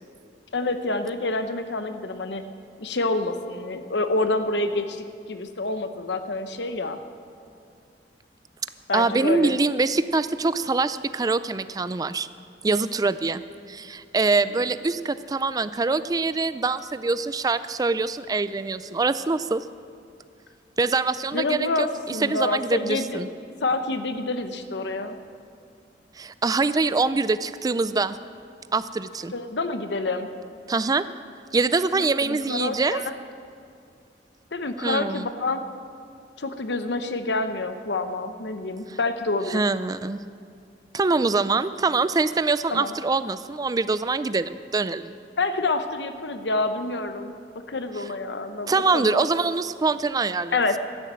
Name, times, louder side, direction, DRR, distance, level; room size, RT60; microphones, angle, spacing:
voice 1, 0.5-2.4 2.8-7.0 8.9-9.6 14.4-14.7 21.3-23.3 23.6-25.1 29.3-30.3 31.9-33.2 34.5-35.6 36.4-39.6 42.7-42.9 45.4-47.3 47.7-49.4 50.5-50.8, left 2 dB, 75° left, 8 dB, 0.9 m, -27 dB
voice 2, 8.9-12.3 12.6-13.4 13.7-19.6 20.8-23.3 26.2-28.2 28.7-29.3 30.7-31.0 31.5-33.0 34.8-35.3 39.5-40.2 40.9-45.1 48.7-50.6, right 3 dB, 20° right, 14 dB, 0.4 m, -24 dB
12.5 x 9.9 x 7.6 m, 2.4 s
head